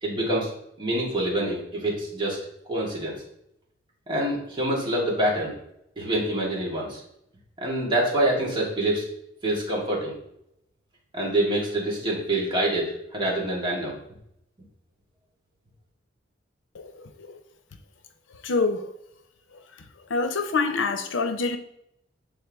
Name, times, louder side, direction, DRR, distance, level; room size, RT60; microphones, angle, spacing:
voice 1, 0.0-0.5 0.8-2.4 2.7-3.2 4.1-5.5 6.0-7.0 7.6-9.1 9.4-10.2 11.1-14.0, right 1 dB, 25° right, 1.9 m, -26 dB
voice 2, 16.7-17.4 18.4-18.9 19.5-19.8 20.1-21.6, left 4 dB, 90° left, 0.6 m, -27 dB
8.0 x 3.5 x 3.5 m
head